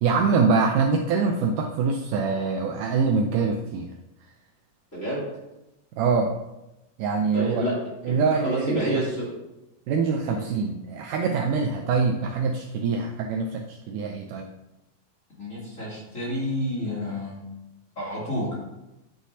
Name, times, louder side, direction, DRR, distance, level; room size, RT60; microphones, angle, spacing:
voice 1, 0.0-3.9 6.0-6.4 7.0-7.7 8.0-9.0 9.9-14.5, right 4 dB, 80° right, 3 dB, 2.0 m, -24 dB
voice 2, 4.9-5.3 7.3-7.7 8.0-9.3 10.2-10.4 15.4-17.5 18.0-18.6, equal, 25° left, -7 dB, 2.8 m, -29 dB
9.7 x 9.0 x 2.8 m, 0.96 s
omnidirectional pair, 4.2 m